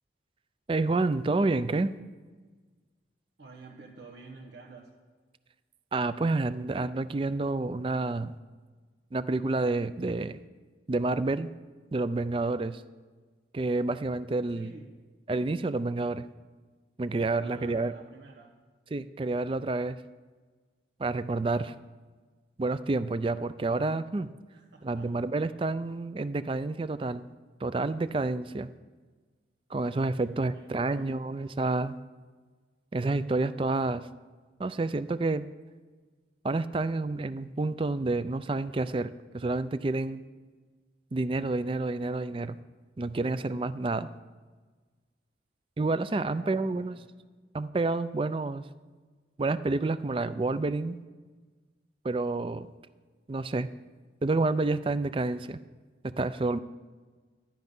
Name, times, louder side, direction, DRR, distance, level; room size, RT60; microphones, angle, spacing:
voice 1, 0.7-1.9 5.9-8.3 9.1-10.4 10.9-11.5 11.9-12.8 13.5-14.7 15.3-16.2 17.0-17.9 18.9-20.0 21.0-21.7 22.6-24.3 24.8-27.2 27.6-28.7 29.7-32.0 32.9-34.1 34.6-35.5 36.4-40.2 41.1-42.6 43.0-44.1 45.8-47.0 47.5-48.6 49.4-51.0 52.0-52.7 53.3-53.7 54.2-55.6 56.0-56.6, right 3 dB, 30° right, 14 dB, 0.4 m, -29 dB
voice 2, 3.4-4.9 14.5-15.0 17.4-18.5 24.5-25.1 30.2-31.1 31.4-31.5 46.2-47.0, right 3 dB, 85° right, -4 dB, 1.5 m, -50 dB
12.0 x 10.5 x 5.4 m, 1.4 s
head